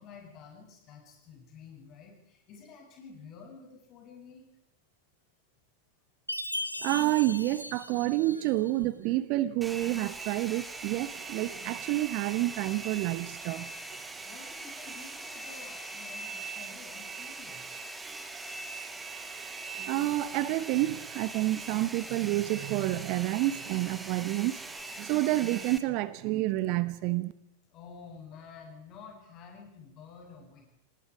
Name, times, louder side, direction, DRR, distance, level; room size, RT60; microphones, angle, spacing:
voice 1, 0.0-4.5 14.2-17.8 19.3-19.4 27.7-30.6, left 5 dB, 35° left, 7.9 m, -50 dB
Chime, 6.3-8.8, left 1 dB, 90° left, 1.4 m, -38 dB
voice 2, 6.8-13.7 19.7-24.6 25.0-27.3, right 17 dB, 45° right, 0.9 m, -29 dB
Domestic sounds home sounds, 9.6-25.8, right 3 dB, 10° right, 1.7 m, -41 dB
27.5 x 20.0 x 4.9 m
figure-of-eight pair, 90°, 0 cm